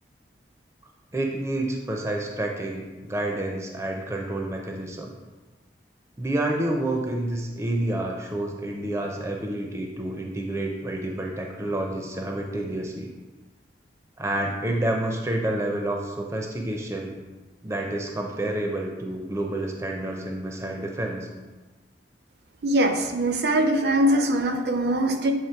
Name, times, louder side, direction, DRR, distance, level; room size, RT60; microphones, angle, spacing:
voice 1, 1.1-5.1 6.2-13.1 14.2-17.1 17.6-21.3, right 1 dB, 15° right, 1 dB, 0.5 m, -29 dB
voice 2, 22.6-25.3, right 1 dB, 65° right, 6 dB, 0.6 m, -22 dB
7.4 x 3.0 x 4.5 m, 1.2 s
head